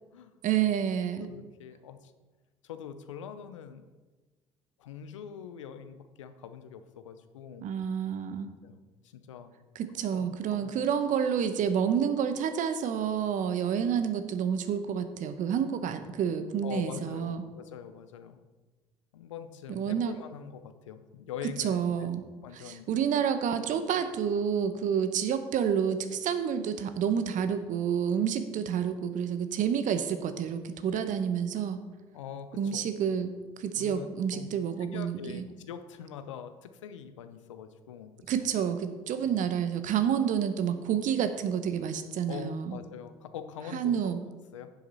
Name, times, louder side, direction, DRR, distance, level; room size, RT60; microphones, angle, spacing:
voice 1, 0.4-1.3 7.6-8.5 9.7-17.4 19.7-20.1 21.6-22.3 22.5-31.8 32.6-35.4 38.3-42.8 43.7-44.2, right 8 dB, 55° right, 10 dB, 0.9 m, -29 dB
voice 2, 1.2-2.1 2.6-3.9 4.8-7.7 8.6-9.5 10.1-10.2 10.5-10.7 16.6-18.4 19.1-22.1 22.4-22.9 32.1-32.8 33.7-34.5 34.9-38.1 38.4-38.5 39.2-39.4 42.3-44.2 44.5-44.7, left 8 dB, 85° left, 10 dB, 0.6 m, -43 dB
10.5 x 7.6 x 4.1 m, 1.3 s
hypercardioid pair, 60°, 15 cm